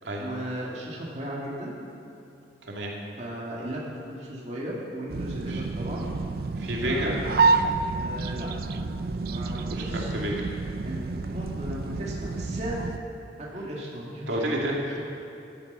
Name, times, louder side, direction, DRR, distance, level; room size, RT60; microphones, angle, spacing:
voice 1, 0.2-1.7 3.2-6.1 6.8-7.2 8.0-8.5 9.1-10.1 10.8-12.8 13.4-14.3, right 1 dB, 40° right, -5 dB, 2.4 m, -36 dB
sound 1, 5.1-13.0, right 4 dB, 55° right, 0.5 m, -28 dB
voice 2, 6.6-7.2 9.6-10.5 14.3-15.1, right 1 dB, 90° right, -3 dB, 2.5 m, -30 dB
15.0 x 11.5 x 5.7 m, 2.7 s
head